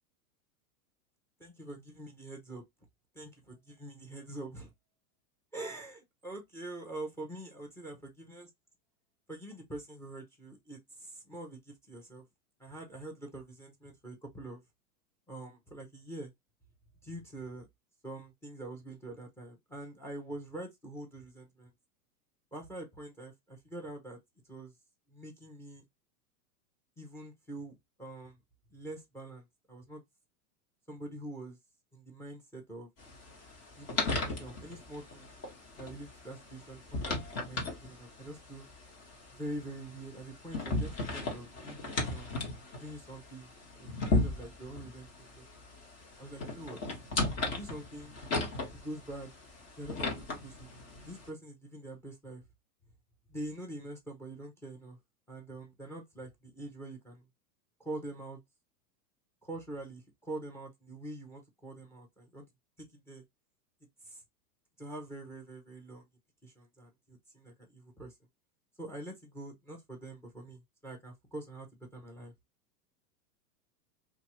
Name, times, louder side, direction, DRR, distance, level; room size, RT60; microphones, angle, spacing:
voice 1, 1.4-2.6 3.1-4.7 5.5-8.5 9.3-12.2 12.6-14.6 15.3-16.3 17.0-17.7 18.0-21.7 22.5-24.2 24.5-24.7 25.1-25.8 27.0-28.4 28.7-30.0 30.9-31.6 31.9-32.9 33.8-35.3 35.8-38.7 39.3-42.3 42.8-45.5 46.2-46.8 47.4-48.1 48.7-49.3 49.8-50.7 51.0-52.4 53.3-55.0 55.3-57.3 57.8-58.4 59.4-62.5 62.8-63.2 64.0-64.2 64.8-66.1 66.4-68.1 68.8-72.3, right 2 dB, 5° left, 0.6 m, -45 dB
sound 1, 33.0-51.3, left 2 dB, 30° left, 1.2 m, -37 dB
2.8 x 2.3 x 2.8 m
hypercardioid pair, 125°, 47 cm